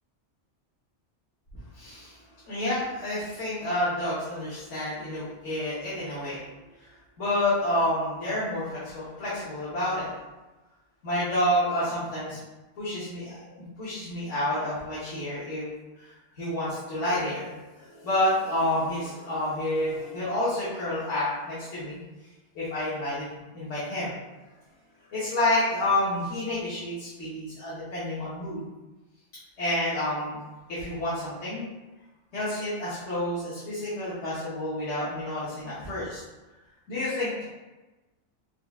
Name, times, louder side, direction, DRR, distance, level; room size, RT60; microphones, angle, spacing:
voice 1, 1.7-2.2 2.4-6.4 6.8-6.9 7.2-10.1 11.0-12.4 12.8-13.5 13.8-15.7 16.0-16.1 16.4-22.0 22.5-23.3 23.5-24.1 25.1-28.6 29.6-30.4 30.7-31.7 32.3-36.2 36.9-37.4, left 1 dB, 80° left, -10 dB, 1.5 m, -29 dB
4.6 x 2.4 x 3.5 m, 1.1 s
omnidirectional pair, 1.2 m